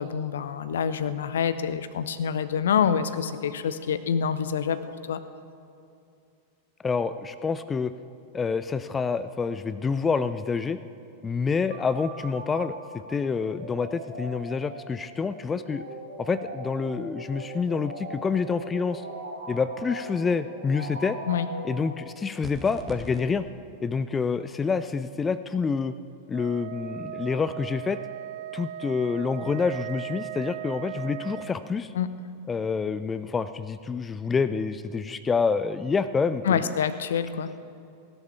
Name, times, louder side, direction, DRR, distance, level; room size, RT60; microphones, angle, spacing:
voice 1, 0.0-5.2 21.3-21.5 31.9-32.1 36.4-37.5, left 7 dB, 65° left, 12 dB, 0.7 m, -26 dB
voice 2, 6.8-7.9 8.3-10.8 11.2-12.8 13.1-15.8 16.2-19.1 19.5-21.2 21.6-23.4 23.8-25.9 26.3-28.0 28.5-31.9 32.5-36.7, left 5 dB, 15° left, 13 dB, 0.5 m, -27 dB
sound 1, 11.7-22.4, right 2 dB, 70° right, 1.8 m, -40 dB
sound 2, 22.4-23.2, right 1 dB, 15° right, 1.6 m, -39 dB
Wind instrument woodwind instrument, 26.3-31.6, right 13 dB, 55° right, 0.4 m, -38 dB
16.5 x 11.5 x 7.0 m, 2.6 s
figure-of-eight pair, 90°, 0 cm